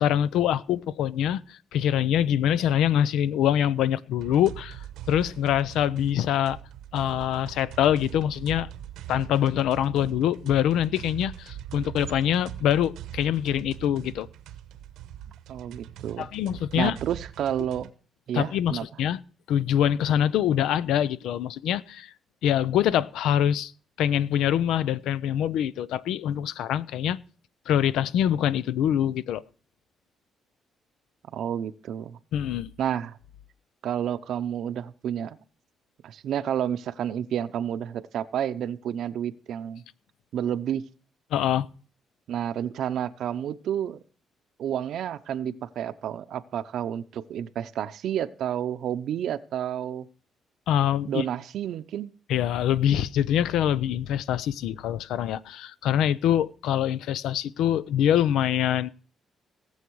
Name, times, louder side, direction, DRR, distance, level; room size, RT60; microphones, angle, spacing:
voice 1, 0.0-4.8 5.1-6.6 6.9-8.7 9.1-14.3 16.2-17.0 18.3-19.2 19.5-22.1 22.4-23.7 24.0-27.2 27.7-29.4 32.3-32.7 41.3-41.7 50.7-51.2 52.3-58.9, left 10 dB, 85° left, 0.5 m, -24 dB
sound 1, 4.2-17.9, right 11 dB, 90° right, 1.0 m, -42 dB
voice 2, 15.5-16.3 16.8-17.9 18.3-18.8 31.3-32.2 32.8-33.2 33.8-35.4 36.0-39.8 40.3-40.8 42.3-44.0 44.6-50.1 51.1-52.1, right 10 dB, 75° right, 0.7 m, -30 dB
18.0 x 7.2 x 4.7 m
cardioid pair, 90°, 0 cm